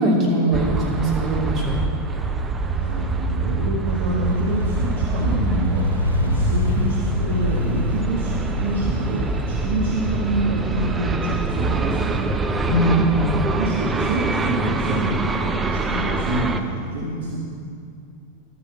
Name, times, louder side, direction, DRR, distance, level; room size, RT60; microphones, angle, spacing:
voice 1, 0.0-1.8 12.6-13.2, right 1 dB, 35° right, -4 dB, 3.0 m, -20 dB
sound 1, 0.5-16.6, right 3 dB, 15° right, 0.6 m, -25 dB
voice 2, 2.7-12.4 13.6-17.4, right 1 dB, 60° right, -3 dB, 1.3 m, -27 dB
Motorcycle, 4.3-11.9, left 1 dB, 85° left, 1.9 m, -27 dB
12.0 x 8.3 x 5.7 m, 2.4 s
figure-of-eight pair, 90°, 0 cm